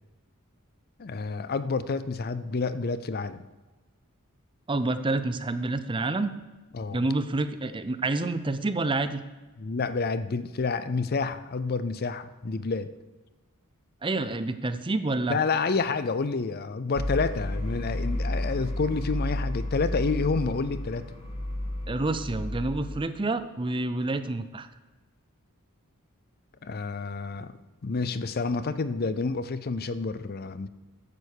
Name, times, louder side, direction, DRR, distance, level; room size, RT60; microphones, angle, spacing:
voice 1, 1.0-3.4 6.7-7.0 9.6-12.9 15.3-21.1 26.6-27.5 27.8-30.7, left 4 dB, 45° left, 14 dB, 0.5 m, -29 dB
voice 2, 4.7-6.3 6.9-9.2 14.0-15.4 21.9-24.7, right 2 dB, 20° right, 11 dB, 0.5 m, -28 dB
sound 1, 16.9-23.0, left 1 dB, 30° left, 4.3 m, -32 dB
9.9 x 6.9 x 6.5 m, 1.2 s
head